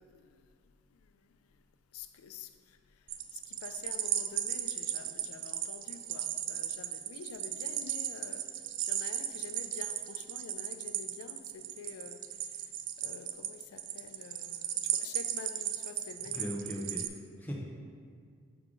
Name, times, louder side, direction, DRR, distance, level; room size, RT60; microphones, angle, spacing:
voice 1, 0.0-1.7 1.9-16.6, left 6 dB, 85° left, 9 dB, 0.4 m, -49 dB
sound 1, 3.1-17.1, right 11 dB, 60° right, 0.3 m, -36 dB
voice 2, 16.2-17.6, equal, 10° left, -2 dB, 0.6 m, -39 dB
6.5 x 4.8 x 3.7 m, 2.2 s
head